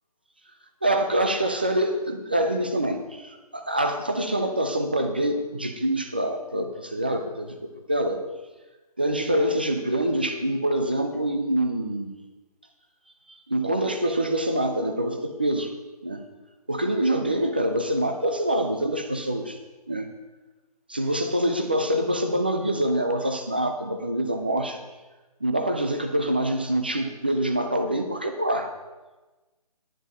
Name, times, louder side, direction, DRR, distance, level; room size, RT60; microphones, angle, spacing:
voice 1, 0.8-8.2 9.0-12.1 13.3-15.7 16.0-16.2 16.7-19.6 19.9-20.1 20.9-24.8 25.4-28.7, right 1 dB, 15° right, 6 dB, 0.4 m, -25 dB
10.0 x 7.2 x 5.4 m, 1.2 s
hypercardioid pair, 165°, 20 cm